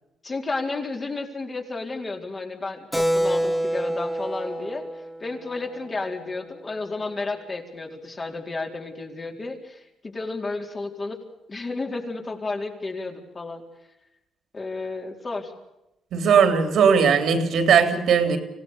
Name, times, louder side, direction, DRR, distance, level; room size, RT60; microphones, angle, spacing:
voice 1, 0.2-11.2 11.5-13.6 14.5-15.5, left 3 dB, 30° left, 2 dB, 4.4 m, -32 dB
Keyboard (musical), 2.9-7.0, equal, 5° left, 2.2 m, -28 dB
voice 2, 16.1-18.4, right 6 dB, 70° right, 7 dB, 3.5 m, -18 dB
26.0 x 17.0 x 6.8 m, 0.90 s
cardioid pair, 90°, 0 cm